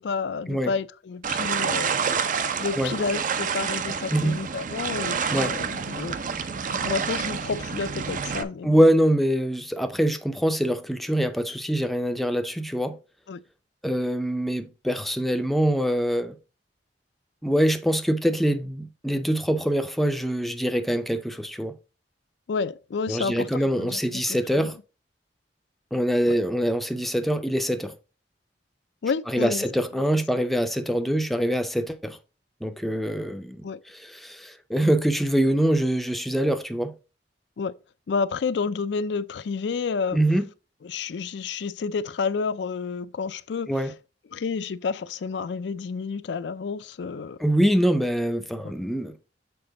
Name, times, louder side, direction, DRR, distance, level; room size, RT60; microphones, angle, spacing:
voice 1, 0.0-1.9 2.6-8.8 13.3-13.4 22.5-24.7 26.2-26.4 29.0-29.6 33.6-33.8 37.6-37.7 38.1-40.2 40.8-43.9 44.3-47.4 48.6-48.7, left 5 dB, 70° left, 0.4 m, -30 dB
sound 1, 1.2-8.4, right 6 dB, 45° right, 0.5 m, -28 dB
voice 2, 8.6-13.0 13.8-16.4 17.4-21.8 23.1-24.7 25.9-27.9 29.3-32.2 32.6-33.6 34.0-36.9 40.1-40.4 43.7-43.9 47.4-49.1, equal, ahead, 0.5 m, -24 dB
7.0 x 4.3 x 3.7 m
head